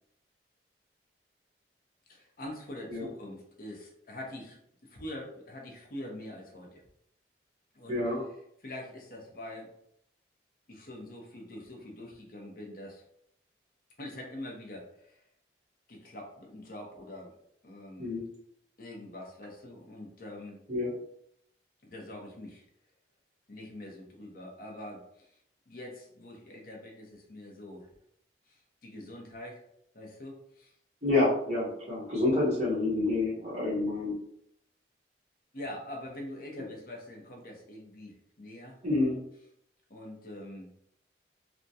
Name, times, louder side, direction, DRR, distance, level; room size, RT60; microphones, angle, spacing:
voice 1, 2.1-6.8 7.7-8.1 8.6-9.7 10.7-13.0 14.0-15.2 15.9-17.3 17.6-18.2 18.8-20.6 21.8-22.6 23.5-25.4 25.7-27.9 28.5-29.7 29.9-30.8 35.5-38.8 39.9-40.7, left 1 dB, 50° left, 0 dB, 0.7 m, -44 dB
voice 2, 7.9-8.2 18.0-18.2 20.7-20.9 31.0-34.1 38.8-39.2, left 2 dB, 40° right, -7 dB, 1.2 m, -28 dB
3.4 x 2.1 x 2.7 m, 0.73 s
head